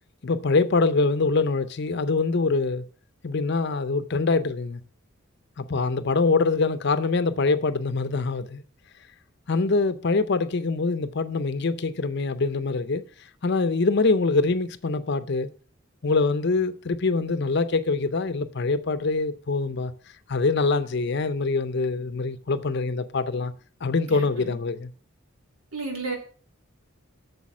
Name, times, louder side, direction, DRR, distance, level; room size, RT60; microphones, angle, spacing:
voice 1, 0.2-2.8 3.2-4.8 5.6-8.6 9.5-13.0 13.4-15.5 16.0-19.9 20.3-23.5 23.8-24.9, left 3 dB, 55° left, 0.6 m, -24 dB
voice 2, 24.1-24.5 25.7-26.2, right 3 dB, 90° right, 3.1 m, -33 dB
8.4 x 6.9 x 6.0 m
head